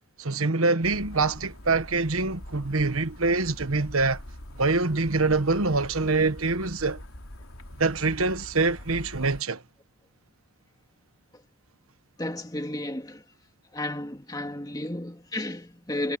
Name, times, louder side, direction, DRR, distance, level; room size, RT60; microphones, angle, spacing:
voice 1, 0.2-4.2 4.6-7.0 7.8-9.6, right 3 dB, 80° right, 1.3 m, -25 dB
sound 1, 0.8-9.4, left 1 dB, 90° left, 3.2 m, -43 dB
voice 2, 12.2-13.2 13.7-16.2, left 1 dB, 20° left, 2.1 m, -33 dB
head